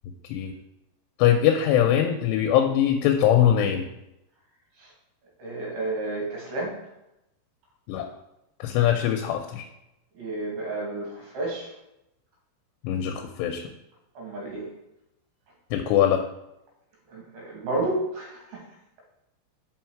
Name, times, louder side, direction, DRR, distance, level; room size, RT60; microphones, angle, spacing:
voice 1, 1.2-3.9 7.9-8.1 8.6-9.7 12.8-13.6 15.7-16.2, left 10 dB, 85° left, 5 dB, 2.7 m, -22 dB
voice 2, 5.4-6.8 10.2-11.7 14.2-14.7 17.1-18.7, right 2 dB, 65° right, -2 dB, 3.6 m, -31 dB
5.8 x 5.5 x 4.5 m, 0.88 s
omnidirectional pair, 5.0 m